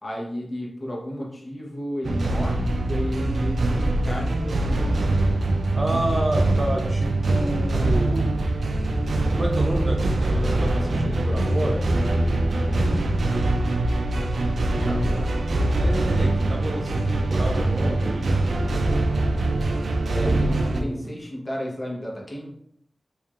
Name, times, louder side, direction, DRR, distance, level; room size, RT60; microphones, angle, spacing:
voice 1, 0.0-5.0 12.4-13.2 14.7-15.5 20.1-22.6, equal, 25° left, -3 dB, 1.0 m, -33 dB
sound 1, 2.0-20.8, right 2 dB, 90° right, 0.4 m, -23 dB
voice 2, 5.7-8.3 9.3-12.6 14.7-15.5 15.7-18.5 20.1-21.1, right 1 dB, 30° right, 1 dB, 0.5 m, -30 dB
4.5 x 2.7 x 2.5 m, 0.70 s
wide cardioid pair, 115°, 0 cm